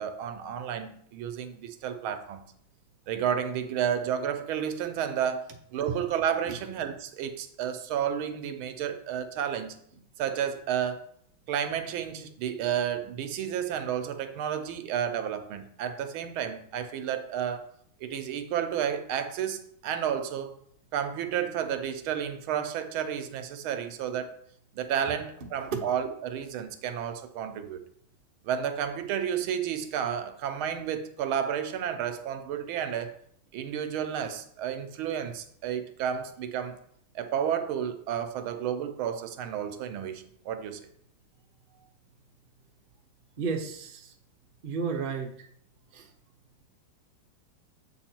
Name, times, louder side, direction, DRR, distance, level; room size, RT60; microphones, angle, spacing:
voice 1, 0.0-2.4 3.1-9.8 10.2-11.1 11.5-17.7 18.0-20.5 20.9-24.3 24.7-27.8 28.4-33.2 33.5-36.8 37.1-40.8, right 9 dB, 80° right, 1.6 m, -31 dB
voice 2, 43.4-44.1 44.6-45.3 45.9-46.1, right 5 dB, 50° right, 0.6 m, -32 dB
7.9 x 4.1 x 4.4 m
omnidirectional pair, 2.2 m